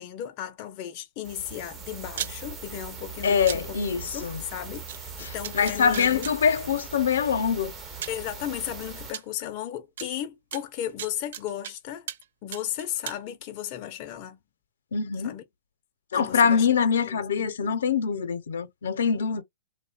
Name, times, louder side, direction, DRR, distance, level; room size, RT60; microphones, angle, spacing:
voice 1, 0.0-3.8 4.1-6.3 8.1-12.1 12.4-14.4 15.2-15.4 16.1-16.7 17.0-17.7, left 11 dB, 35° left, 0.4 m, -35 dB
sound 1, 1.2-9.1, right 4 dB, 20° right, 0.5 m, -41 dB
sound 2, 2.2-2.3 3.5-3.6 4.9-5.0 5.4-6.3 7.4-7.5 8.0-8.2 9.1-9.2 10.0-10.1 10.5-11.7 12.1-12.3 12.5-13.2, right 10 dB, 65° right, 0.3 m, -35 dB
voice 2, 3.2-4.4 5.2-7.7 14.9-15.3 16.1-19.4, left 6 dB, 85° left, 0.6 m, -24 dB
2.7 x 2.1 x 2.3 m
hypercardioid pair, 150°, 0 cm